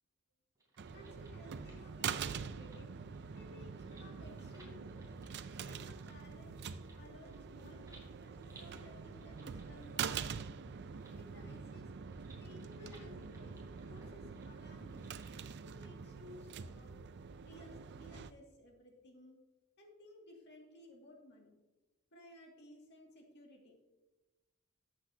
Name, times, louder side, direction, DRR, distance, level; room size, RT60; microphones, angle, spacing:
sound 1, 0.5-15.3, right 3 dB, 15° right, 3.4 m, -65 dB
sound 2, 0.8-18.3, right 6 dB, 55° right, 0.4 m, -45 dB
voice 1, 0.9-2.9 3.3-5.1 5.5-10.5 11.1-11.9 12.4-13.6 13.8-15.0 15.6-16.9 17.4-19.4 19.8-21.6 22.1-23.8, left 1 dB, 55° left, 0 dB, 2.2 m, -57 dB
13.5 x 8.0 x 2.8 m, 1.1 s
head